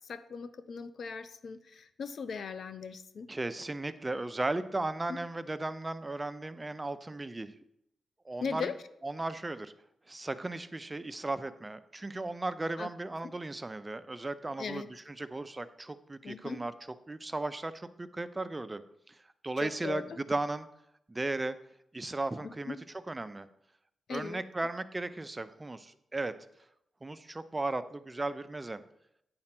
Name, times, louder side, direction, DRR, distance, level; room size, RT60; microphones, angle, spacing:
voice 1, 0.1-3.3 5.1-5.2 8.4-8.7 12.8-12.9 13.2-13.3 14.6-14.9 16.2-16.6 19.6-20.0 22.4-22.8 24.1-24.4, left 5 dB, 65° left, 12 dB, 0.5 m, -38 dB
voice 2, 3.3-7.5 8.3-8.7 9.0-9.7 10.1-16.7 17.1-18.8 19.1-19.2 19.4-20.7 21.1-21.5 21.9-22.8 23.1-23.5 24.1-26.3 27.0-28.8, right 2 dB, 20° right, 12 dB, 0.5 m, -36 dB
8.7 x 4.3 x 5.9 m, 0.78 s
cardioid pair, 85°, 0 cm